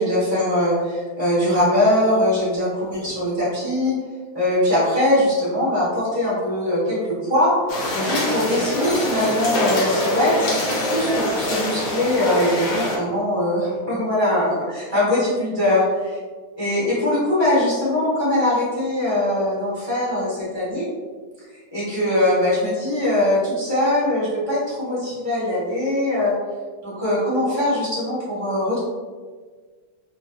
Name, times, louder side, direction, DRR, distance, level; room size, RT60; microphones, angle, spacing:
voice 1, 0.0-4.0 4.3-7.6 7.9-10.5 10.8-16.2 16.6-20.9 21.7-26.3 26.8-28.8, left 1 dB, 35° left, -10 dB, 0.4 m, -21 dB
sound 1, 7.7-13.0, left 1 dB, 70° left, 0.9 m, -24 dB
3.9 x 2.1 x 2.5 m, 1.5 s
omnidirectional pair, 2.3 m